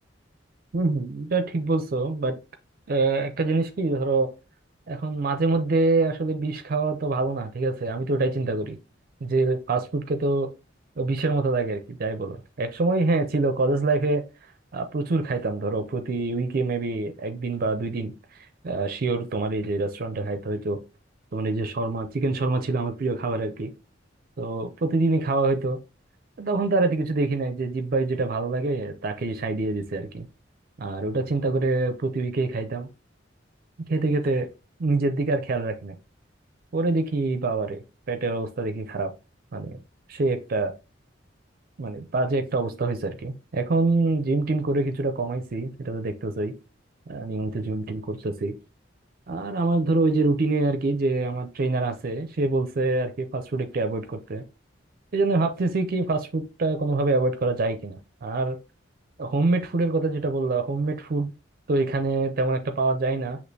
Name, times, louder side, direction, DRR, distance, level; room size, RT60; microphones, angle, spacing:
voice 1, 0.7-2.4 2.9-4.3 4.9-8.8 9.2-10.5 11.0-14.2 14.7-20.8 21.3-23.7 24.4-25.8 26.4-30.3 30.8-32.9 33.9-34.5 34.8-36.0 36.7-39.1 39.5-39.8 40.1-40.7 41.8-46.5 47.1-48.6 49.3-54.4 55.1-58.6 59.2-61.3 61.7-63.4, right 3 dB, 50° right, 0.5 m, -25 dB
6.1 x 2.9 x 2.6 m
head